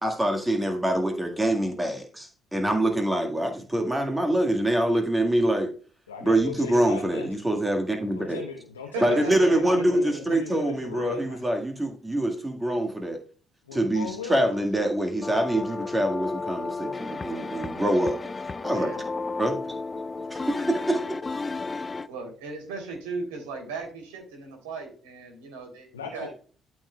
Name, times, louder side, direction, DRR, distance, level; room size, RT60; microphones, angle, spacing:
voice 1, 0.0-5.7 6.2-8.4 9.0-13.2 13.7-18.2 18.6-18.9 19.4-19.6 20.3-21.2, right 1 dB, 15° right, 3 dB, 1.9 m, -25 dB
voice 2, 6.1-7.4 8.1-11.4 13.6-14.7 25.9-26.4, left 6 dB, 85° left, 1 dB, 1.0 m, -38 dB
voice 3, 8.9-9.6 9.9-10.2 18.7-19.0 22.1-26.3, right 4 dB, 75° right, 3 dB, 3.4 m, -36 dB
sound 1, 15.2-22.1, left 3 dB, 30° left, 0.6 m, -33 dB
13.5 x 6.1 x 2.4 m, 0.39 s
figure-of-eight pair, 45°, 0 cm